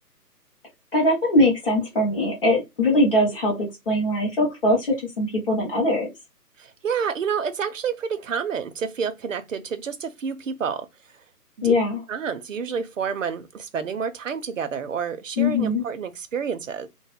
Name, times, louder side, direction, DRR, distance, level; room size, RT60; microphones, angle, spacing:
voice 1, 0.9-6.1 11.6-12.0 15.4-15.8, left 1 dB, 35° left, 1.3 m, -21 dB
voice 2, 6.6-10.9 11.6-11.7 12.1-16.9, right 6 dB, 55° right, 0.5 m, -29 dB
2.9 x 2.1 x 3.3 m
figure-of-eight pair, 160°, 48 cm